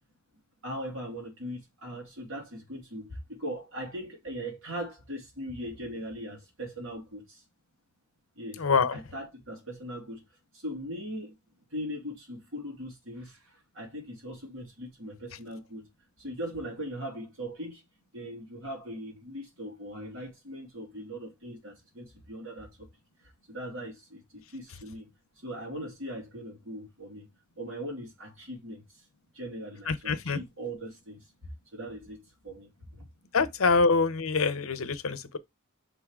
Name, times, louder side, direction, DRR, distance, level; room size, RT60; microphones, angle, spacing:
voice 1, 0.6-7.4 8.4-8.6 8.9-10.2 10.5-11.3 11.7-15.9 16.2-17.8 18.1-22.9 23.5-25.1 25.4-27.3 27.6-28.8 29.3-33.1, equal, 65° right, 3.1 m, -40 dB
voice 2, 8.6-8.9 29.9-30.4 33.3-35.4, left 4 dB, 70° left, 0.8 m, -25 dB
5.2 x 3.7 x 4.8 m
head